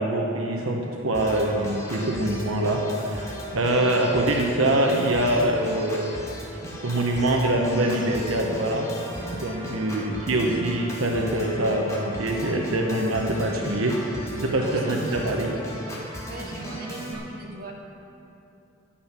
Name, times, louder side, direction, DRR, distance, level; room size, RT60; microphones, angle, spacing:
voice 1, 0.0-6.1 6.8-8.9 9.3-14.0 14.3-15.5, right 1 dB, 80° right, 1 dB, 1.1 m, -24 dB
Organ, 1.1-17.1, equal, 15° left, 1.9 m, -37 dB
voice 2, 14.6-15.2 16.2-17.7, right 3 dB, 50° right, -1 dB, 1.6 m, -39 dB
13.0 x 9.2 x 6.0 m, 2.9 s
head